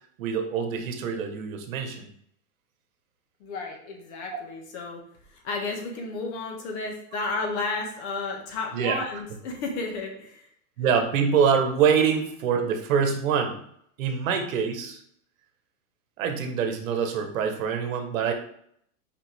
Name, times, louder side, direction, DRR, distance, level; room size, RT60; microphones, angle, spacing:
voice 1, 0.2-2.1 4.3-4.4 8.7-9.0 10.8-13.6 14.0-15.0 16.2-18.3, right 6 dB, 60° right, 5 dB, 1.4 m, -25 dB
voice 2, 3.4-5.0 5.3-10.5, left 3 dB, 50° left, 2 dB, 1.7 m, -32 dB
5.8 x 5.1 x 3.5 m, 0.66 s
hypercardioid pair, 140°, 45 cm